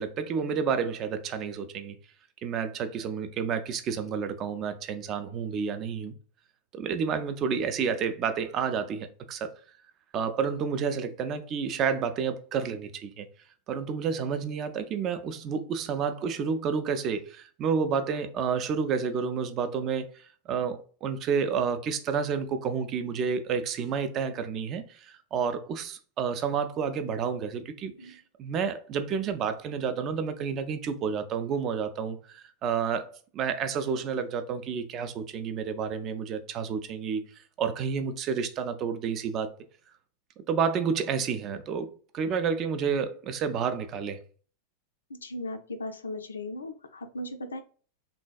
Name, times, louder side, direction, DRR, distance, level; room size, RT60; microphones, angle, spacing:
voice 1, 0.0-2.0 2.4-6.1 6.7-9.5 10.1-13.3 13.7-37.2 37.6-39.5 40.4-44.2, right 6 dB, 35° right, 0.3 m, -30 dB
voice 2, 45.1-47.6, left 1 dB, 70° left, 0.3 m, -37 dB
3.2 x 2.2 x 2.3 m
figure-of-eight pair, 90°, 0 cm